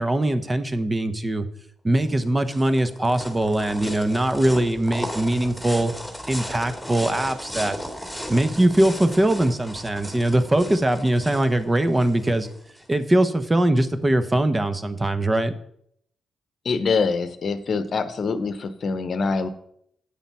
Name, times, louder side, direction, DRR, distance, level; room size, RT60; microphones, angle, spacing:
voice 1, 0.0-1.5 1.8-5.9 6.3-7.7 8.3-12.5 12.9-15.5, right 1 dB, 25° right, 10 dB, 1.1 m, -21 dB
sound 1, 2.0-12.9, equal, ahead, 2.5 m, -36 dB
voice 2, 16.6-19.5, left 4 dB, 55° left, 12 dB, 0.9 m, -24 dB
8.7 x 7.2 x 5.6 m, 0.71 s
hypercardioid pair, 40°, 0 cm